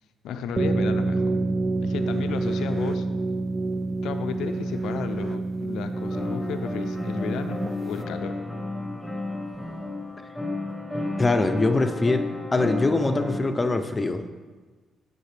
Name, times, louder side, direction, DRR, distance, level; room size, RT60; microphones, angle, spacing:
voice 1, 0.2-1.4 1.8-3.1 4.0-8.4, left 7 dB, 80° left, 8 dB, 0.5 m, -34 dB
sound 1, 0.6-8.0, right 3 dB, 25° right, 0.3 m, -27 dB
sound 2, 5.9-13.4, left 2 dB, ahead, 1.3 m, -32 dB
voice 2, 11.2-12.3 12.5-14.2, left 2 dB, 20° left, 8 dB, 0.6 m, -23 dB
9.2 x 6.7 x 3.3 m, 1.4 s
cardioid pair, 90°, 0 cm